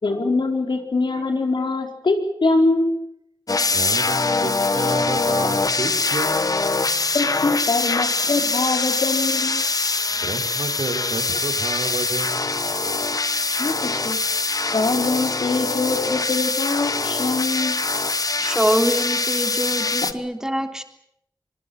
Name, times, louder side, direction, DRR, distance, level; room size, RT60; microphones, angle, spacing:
voice 1, 0.0-3.0 7.1-9.6 13.6-14.2 14.7-17.8, left 3 dB, 85° left, 4 dB, 4.6 m, -23 dB
sound 1, 3.5-20.1, left 3 dB, 50° left, 1.3 m, -23 dB
voice 2, 3.6-6.6 10.1-12.9, right 3 dB, 85° right, 6 dB, 3.8 m, -31 dB
voice 3, 18.4-20.8, equal, 5° right, 5 dB, 3.4 m, -24 dB
25.5 x 22.0 x 7.9 m, 0.73 s
wide cardioid pair, 70°, 8 cm